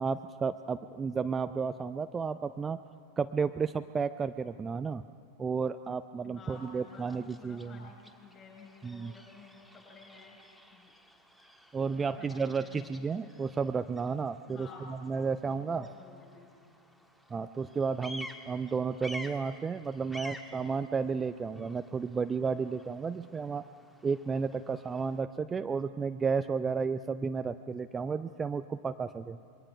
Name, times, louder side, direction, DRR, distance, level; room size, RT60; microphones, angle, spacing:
voice 1, 0.0-2.8 3.2-5.0 5.4-7.8 8.8-9.1 11.7-15.9 17.3-23.7 24.0-29.4, right 5 dB, 15° right, 11 dB, 0.5 m, -32 dB
voice 2, 6.2-10.4 10.7-10.9 11.9-13.4 14.5-14.9 15.4-16.5, left 5 dB, 25° left, 0 dB, 7.6 m, -53 dB
Bird vocalization bird call bird song, 6.5-25.2, equal, 5° left, 1.5 m, -51 dB
27.0 x 22.5 x 5.6 m, 2.2 s
figure-of-eight pair, 90°, 0 cm